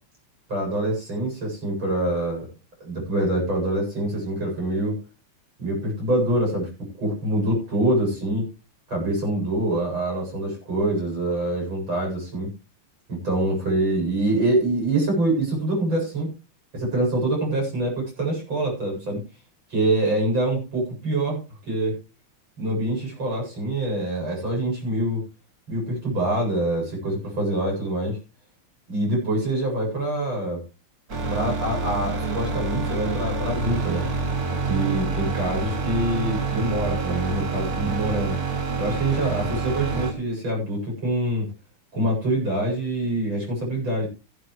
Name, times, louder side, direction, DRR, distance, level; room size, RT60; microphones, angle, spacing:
voice 1, 0.5-2.5 2.8-5.0 5.6-6.7 7.0-8.5 8.9-12.5 13.1-16.3 16.7-19.2 19.7-21.4 21.7-22.0 22.6-25.2 25.7-28.2 28.9-30.6 31.3-34.1 34.7-38.4 38.8-41.5 41.9-44.1, right 1 dB, 60° right, -1 dB, 8.8 m, -25 dB
sound 1, 31.1-40.1, right 4 dB, 45° right, 2.2 m, -27 dB
16.0 x 11.5 x 3.2 m, 0.31 s
omnidirectional pair, 2.4 m